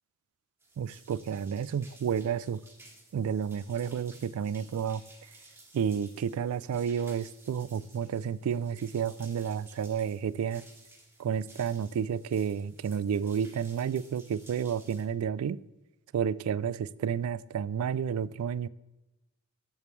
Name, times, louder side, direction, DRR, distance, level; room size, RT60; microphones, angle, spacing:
sound 1, 0.6-15.0, right 2 dB, 10° right, 1.4 m, -56 dB
voice 1, 0.8-2.6 3.1-5.0 5.7-10.6 11.2-15.6 16.1-18.7, right 7 dB, 85° right, 18 dB, 0.3 m, -31 dB
13.5 x 5.2 x 3.1 m, 1.0 s
head